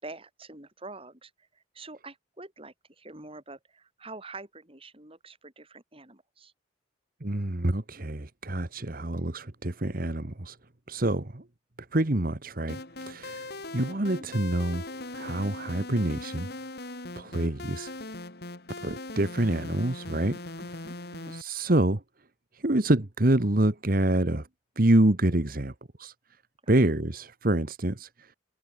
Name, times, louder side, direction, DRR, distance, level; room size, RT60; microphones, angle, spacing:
voice 1, 0.0-6.5 20.6-21.4 26.6-26.7, right 2 dB, 30° right, 6.1 m, -46 dB
voice 2, 7.2-10.6 10.9-11.4 11.9-12.8 13.1-14.8 15.1-16.5 17.2-17.9 18.8-20.4 21.3-22.0 22.5-24.5 24.8-25.7 26.0-26.1 26.7-28.3, right 1 dB, 50° right, 1.5 m, -26 dB
sound 1, 12.7-21.4, left 2 dB, 60° left, 2.8 m, -40 dB
head